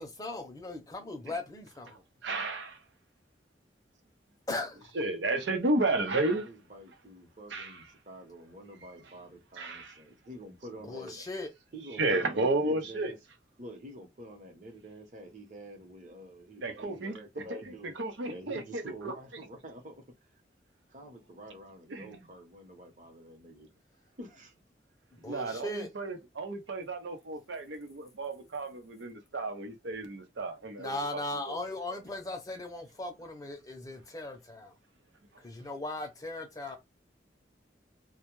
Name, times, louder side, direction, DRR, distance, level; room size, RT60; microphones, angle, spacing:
voice 1, 0.0-2.0 4.5-4.8 10.8-11.5 25.1-25.9 30.8-34.7 35.4-36.8, left 2 dB, 20° left, 0.6 m, -38 dB
voice 2, 1.9-2.8 4.9-6.5 7.5-7.8 9.6-10.0 12.0-13.1 16.6-17.4 17.8-19.1 21.9-22.2 25.3-31.5 31.9-32.0, right 2 dB, 90° right, 0.7 m, -33 dB
voice 3, 5.9-11.2 11.7-13.2 13.6-17.9 18.3-20.4 20.9-23.7 24.2-24.5, right 1 dB, 45° right, 0.8 m, -48 dB
2.1 x 2.1 x 3.0 m
head